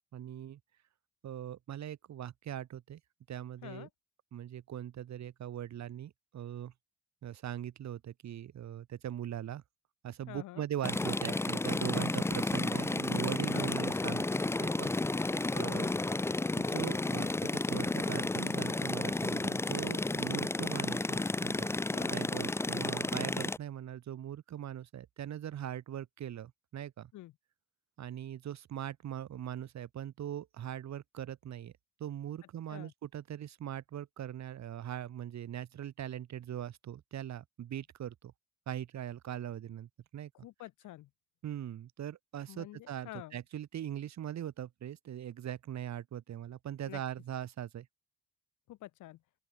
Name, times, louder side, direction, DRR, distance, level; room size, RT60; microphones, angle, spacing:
voice 1, 0.1-0.6 1.2-3.0 3.3-3.9 4.3-6.7 7.2-9.6 10.0-15.9 16.5-21.7 22.1-27.1 28.0-31.7 32.0-38.3 38.7-40.3 41.4-47.9, right 10 dB, 65° right, 2.3 m, -41 dB
voice 2, 10.3-10.7 13.5-13.9 15.5-15.8 21.9-22.2 27.1-27.3 32.7-32.9 40.3-41.1 42.5-43.4 46.9-47.0 48.7-49.2, left 15 dB, 80° left, 1.0 m, -47 dB
sound 1, 10.8-23.6, left 2 dB, 10° left, 0.4 m, -32 dB
open air
cardioid pair, 90°, 30 cm